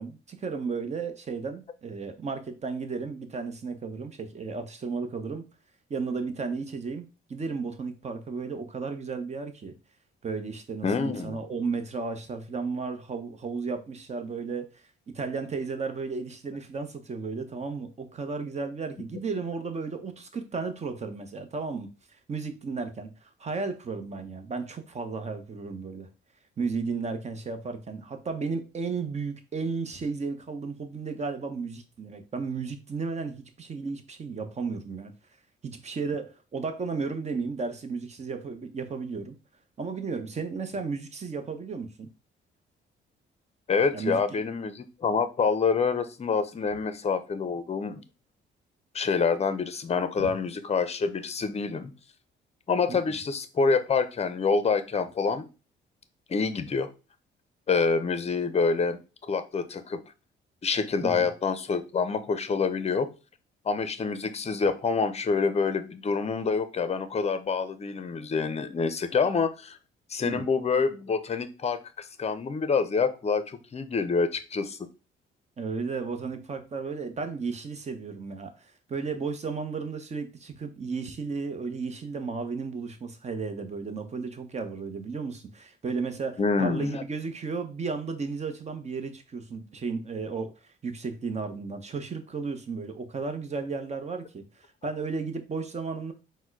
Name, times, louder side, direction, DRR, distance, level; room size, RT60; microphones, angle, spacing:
voice 1, 0.0-5.4 5.9-9.7 10.2-14.7 15.1-21.9 22.3-23.1 23.4-26.1 26.6-35.1 35.6-39.3 39.8-42.1 43.9-44.4 50.2-50.3 52.9-53.0 61.0-61.3 70.2-70.5 75.6-90.5 90.8-94.4 94.8-96.1, right 4 dB, 35° right, 7 dB, 0.8 m, -34 dB
voice 2, 10.8-11.4 43.7-48.0 48.9-51.9 52.7-55.5 56.3-56.9 57.7-59.0 59.3-60.0 60.6-63.1 63.7-69.8 70.1-74.8 86.4-87.0, left 5 dB, 30° left, 12 dB, 0.6 m, -27 dB
4.2 x 2.1 x 4.5 m, 0.31 s
cardioid pair, 90°, 20 cm